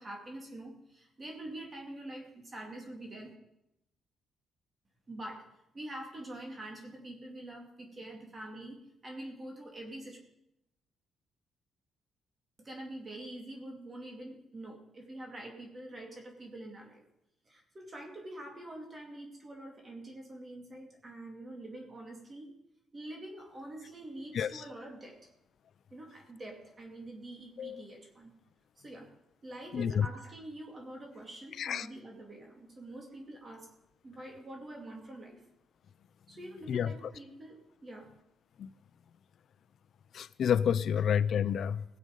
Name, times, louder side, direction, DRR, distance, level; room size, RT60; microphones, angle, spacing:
voice 1, 0.0-3.3 5.1-5.5 5.7-10.2 12.6-17.0 17.5-22.5 22.9-25.2 25.9-28.4 28.8-29.1 29.4-33.7 34.0-35.4 36.3-38.1, right 1 dB, 30° right, 1 dB, 2.5 m, -45 dB
voice 2, 29.7-30.1 31.6-31.9 36.7-37.1 38.6-38.7 40.1-41.8, left 8 dB, 60° left, 17 dB, 0.5 m, -29 dB
18.0 x 7.7 x 5.4 m, 0.84 s
cardioid pair, 90°, 0 cm